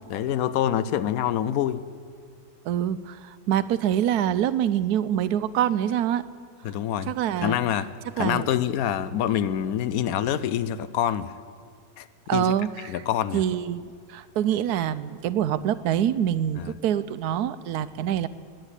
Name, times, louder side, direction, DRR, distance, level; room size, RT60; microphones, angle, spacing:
voice 1, 0.1-1.8 6.6-7.1 7.4-11.3 12.0-12.1 12.3-12.5 12.9-13.4 16.6-16.7, left 10 dB, 75° left, 15 dB, 1.0 m, -26 dB
voice 2, 2.7-6.2 7.1-7.6 8.2-8.5 12.3-13.0 13.3-18.3, right 10 dB, 85° right, 14 dB, 1.1 m, -25 dB
19.5 x 9.1 x 8.2 m, 2.1 s
omnidirectional pair, 1.6 m